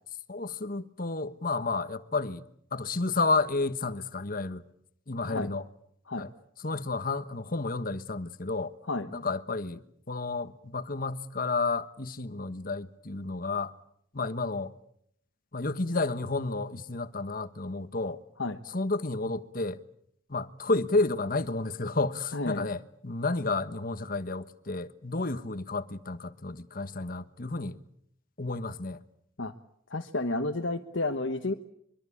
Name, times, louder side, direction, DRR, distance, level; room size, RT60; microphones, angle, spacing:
voice 1, 0.3-2.4 2.7-4.6 5.1-5.6 6.2-6.3 6.6-8.7 9.1-13.7 14.1-14.7 15.5-18.2 18.7-19.8 20.3-27.8 28.4-29.0, left 3 dB, 45° left, 1.3 m, -31 dB
voice 2, 22.3-22.7 29.4-29.5 29.9-31.5, left 2 dB, 70° left, 1.3 m, -31 dB
24.5 x 23.5 x 8.6 m
head